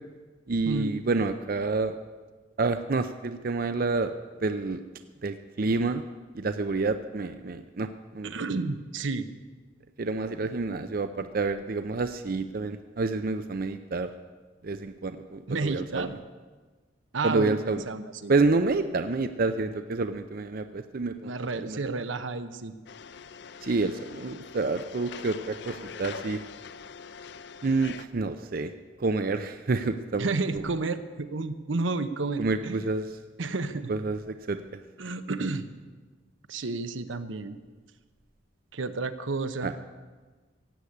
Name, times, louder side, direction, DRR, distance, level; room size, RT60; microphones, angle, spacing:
voice 1, 0.5-1.9 2.6-4.1 4.4-4.8 5.2-6.0 6.3-7.9 8.1-8.4 10.0-14.1 14.6-16.1 17.2-17.8 18.3-21.3 21.7-21.8 23.6-26.4 27.6-28.7 29.0-30.3 30.5-30.6 32.4-33.0 33.9-34.2 34.5-34.6 39.6-39.7, right 3 dB, 50° right, 10 dB, 0.5 m, -28 dB
voice 2, 8.2-9.3 15.5-16.1 17.1-18.3 21.2-22.7 30.2-33.0 33.4-33.9 35.0-35.7 36.5-37.6 38.7-39.7, right 3 dB, 80° right, 10 dB, 0.9 m, -31 dB
sound 1, 22.9-28.0, left 6 dB, 60° left, 0.5 m, -43 dB
16.5 x 8.1 x 8.5 m, 1.4 s
head